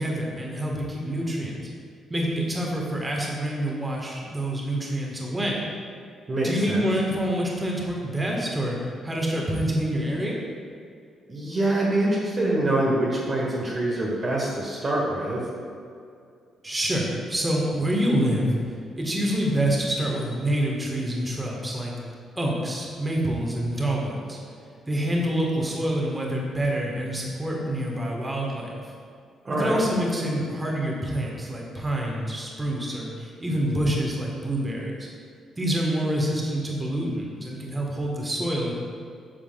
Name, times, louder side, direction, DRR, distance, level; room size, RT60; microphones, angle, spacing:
voice 1, 0.0-1.6 2.1-5.6 6.4-10.4 16.6-21.9 22.4-24.4 24.9-28.7 29.5-35.1 35.6-38.7, right 1 dB, 20° right, -2 dB, 1.7 m, -27 dB
voice 2, 6.3-6.9 11.3-15.4 29.4-29.8, right 1 dB, 35° right, -4 dB, 1.4 m, -25 dB
8.9 x 7.1 x 2.5 m, 2.3 s
figure-of-eight pair, 40°, 0 cm